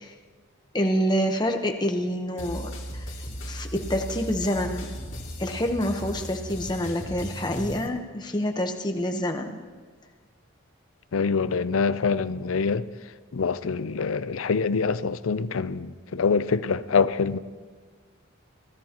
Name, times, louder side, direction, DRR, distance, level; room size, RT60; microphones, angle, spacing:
voice 1, 0.7-3.1 3.5-4.9 5.4-9.6, equal, 20° left, 1.0 m, -27 dB
sound 1, 2.4-7.9, equal, 60° left, 2.6 m, -36 dB
voice 2, 11.1-12.9 13.3-17.4, left 5 dB, 85° left, 0.5 m, -25 dB
24.5 x 16.0 x 3.0 m
head